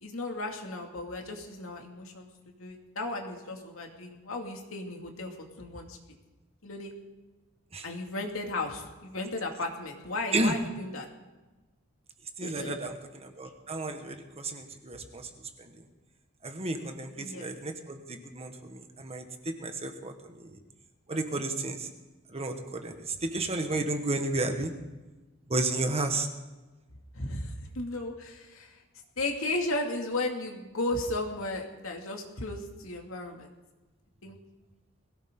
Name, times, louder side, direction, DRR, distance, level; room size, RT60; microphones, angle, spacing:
voice 1, 0.0-2.3 2.6-6.0 6.6-6.9 7.8-11.1 12.4-12.8 17.2-17.5 27.1-28.8 29.2-33.5 34.2-34.4, left 2 dB, 80° left, 2 dB, 2.4 m, -35 dB
voice 2, 12.4-12.9 13.2-15.3 16.4-19.2 19.6-20.1 20.4-20.5 21.1-21.9 22.3-22.9 23.2-24.7 25.5-26.3, right 2 dB, 30° right, 5 dB, 1.5 m, -32 dB
22.0 x 16.5 x 3.9 m, 1.2 s
head